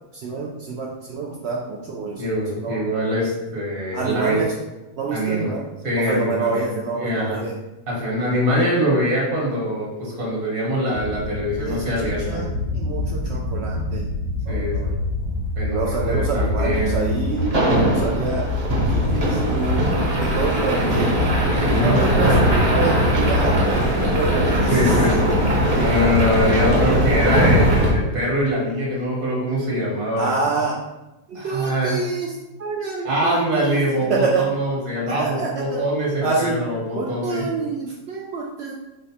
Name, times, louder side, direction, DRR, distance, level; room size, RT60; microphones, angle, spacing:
voice 1, 0.1-2.2 2.6-2.8 3.9-4.5 5.0-5.7 6.1-7.5 11.7-12.5 12.7-14.1 14.5-14.9 15.7-18.5 18.9-21.2 21.7-24.6 25.5-25.9 30.2-30.8 31.3-32.3 32.6-33.8 34.1-34.5 35.2-35.8 36.2-36.6 36.9-38.7, right 4 dB, 85° right, -2 dB, 0.5 m, -27 dB
voice 2, 2.2-4.4 5.1-5.5 5.8-6.7 7.0-7.4 7.9-12.5 14.5-15.0 15.6-17.2 19.2-19.4 20.8-20.9 21.5-22.1 24.6-30.4 31.3-32.0 33.0-37.5, equal, 60° right, -4 dB, 1.6 m, -23 dB
sound 1, 10.9-27.9, equal, 35° right, 0.7 m, -21 dB
5.0 x 2.1 x 4.1 m, 1.0 s
omnidirectional pair, 1.7 m